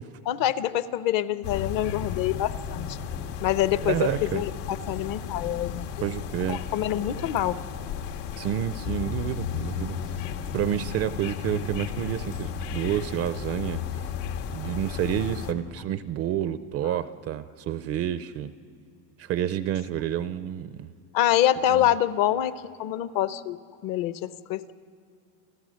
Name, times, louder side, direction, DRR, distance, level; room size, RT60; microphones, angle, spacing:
voice 1, 0.3-3.0 3.4-5.9 6.5-7.6 21.1-23.6 23.8-24.7, left 12 dB, 50° left, 15 dB, 0.7 m, -26 dB
sound 1, 1.4-15.5, left 7 dB, 85° left, 1.9 m, -34 dB
voice 2, 3.8-4.4 6.0-6.6 8.4-10.3 10.5-14.1 14.5-18.5 19.2-20.9 21.7-21.9, right 11 dB, 35° right, 13 dB, 0.4 m, -29 dB
29.5 x 14.5 x 6.3 m, 2.5 s
cardioid pair, 150°, 46 cm